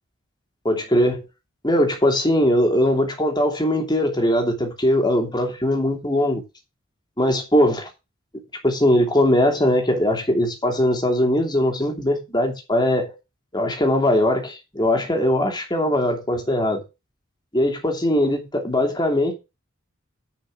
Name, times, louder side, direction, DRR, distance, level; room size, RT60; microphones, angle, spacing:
voice 1, 0.6-1.2 1.6-6.4 7.2-7.9 8.6-13.1 13.5-16.8 17.5-19.3, left 1 dB, 20° left, 2.8 m, -20 dB
10.5 x 5.7 x 6.0 m
head